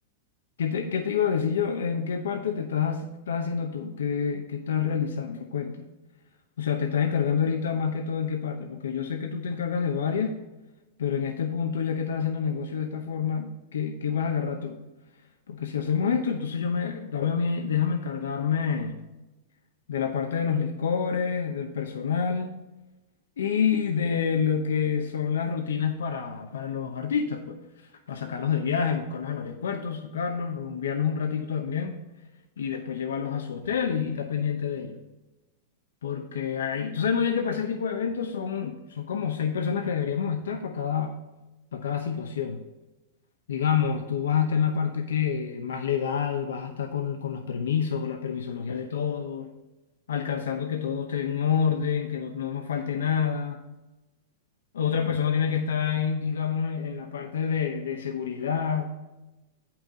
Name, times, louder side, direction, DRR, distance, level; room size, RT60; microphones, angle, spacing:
voice 1, 0.6-5.9 6.6-10.4 11.0-14.8 15.5-19.0 19.9-22.5 23.4-27.6 28.1-32.0 32.6-35.0 36.0-41.2 41.7-42.6 43.5-49.5 50.1-53.6 54.7-59.0, left 7 dB, 90° left, 4 dB, 0.8 m, -28 dB
8.4 x 5.8 x 3.9 m, 1.1 s
hypercardioid pair, 130°, 0 cm